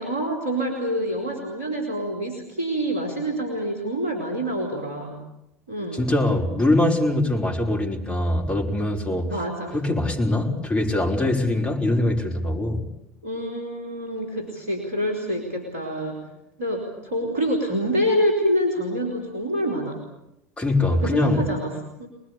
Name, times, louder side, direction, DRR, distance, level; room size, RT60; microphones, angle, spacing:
voice 1, 0.0-5.2 5.7-6.0 9.2-9.8 13.2-16.2 16.6-20.0 20.9-22.1, equal, 75° right, 1 dB, 4.3 m, -26 dB
voice 2, 5.9-9.3 9.7-12.9 20.6-21.5, left 1 dB, 15° left, 0 dB, 5.4 m, -22 dB
27.0 x 20.0 x 8.6 m, 0.82 s
figure-of-eight pair, 70°, 8 cm